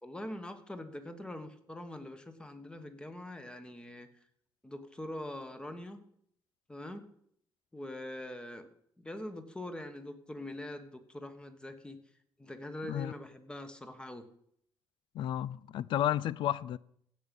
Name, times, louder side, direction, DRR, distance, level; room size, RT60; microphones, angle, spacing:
voice 1, 0.0-4.1 4.6-6.0 6.7-7.1 7.7-8.7 9.0-12.0 12.4-14.3, left 1 dB, 10° left, 1.3 m, -43 dB
voice 2, 15.1-16.8, left 11 dB, 70° left, 0.4 m, -32 dB
16.0 x 6.2 x 5.4 m
cardioid pair, 120°, 9 cm